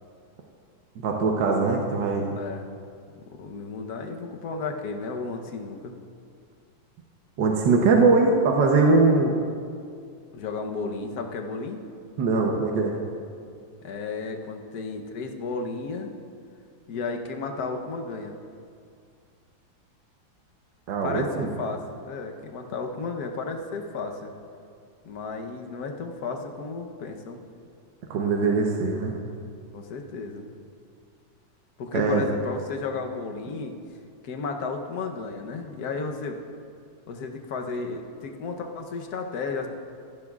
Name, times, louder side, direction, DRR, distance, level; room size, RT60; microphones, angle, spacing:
voice 1, 1.0-2.3 7.4-9.4 12.2-12.9 20.9-21.5 28.1-29.1 31.9-32.2, right 3 dB, 65° right, 0 dB, 1.5 m, -21 dB
voice 2, 2.4-2.7 3.4-6.0 10.3-11.8 13.8-16.1 16.9-18.4 21.0-24.3 25.0-27.4 29.7-30.5 31.8-33.7 34.2-36.4 37.1-39.7, left 4 dB, 60° left, 3 dB, 1.3 m, -33 dB
17.0 x 14.0 x 2.4 m, 2.3 s
omnidirectional pair, 2.1 m